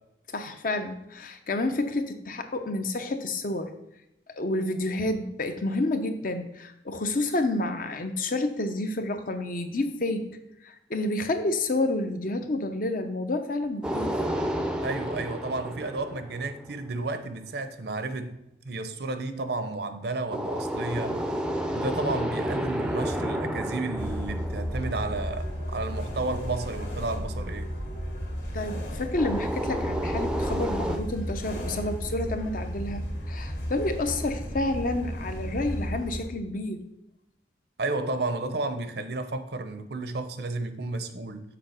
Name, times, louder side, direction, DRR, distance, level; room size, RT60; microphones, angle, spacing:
voice 1, 0.3-3.7 4.4-10.4 10.6-14.1 28.5-36.9, left 2 dB, 50° left, 0.7 m, -29 dB
sound 1, 13.8-16.9 20.3-25.7 29.2-31.0, equal, 5° right, 0.5 m, -31 dB
voice 2, 14.8-21.2 21.7-27.7 37.8-41.4, right 2 dB, 60° right, 0.7 m, -32 dB
sound 2, 24.0-36.3, equal, 75° left, 2.3 m, -33 dB
6.9 x 3.7 x 6.4 m
head